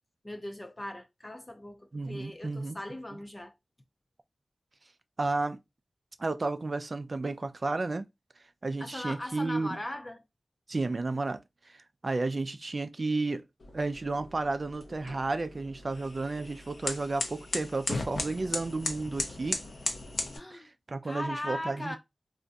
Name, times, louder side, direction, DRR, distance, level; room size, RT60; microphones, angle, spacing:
voice 1, 0.2-3.5 8.8-10.2 20.3-20.7 21.0-22.0, left 1 dB, 25° left, 0.5 m, -39 dB
voice 2, 1.9-2.8 3.1-3.2 5.2-5.6 6.2-8.1 8.6-9.8 10.7-11.4 11.7-11.8 12.0-13.4 13.7-19.6 20.5-22.0, right 3 dB, 50° right, 0.4 m, -32 dB
sound 1, 13.6-20.4, left 2 dB, 75° left, 0.7 m, -37 dB
2.5 x 2.3 x 3.9 m
wide cardioid pair, 65°, 0 cm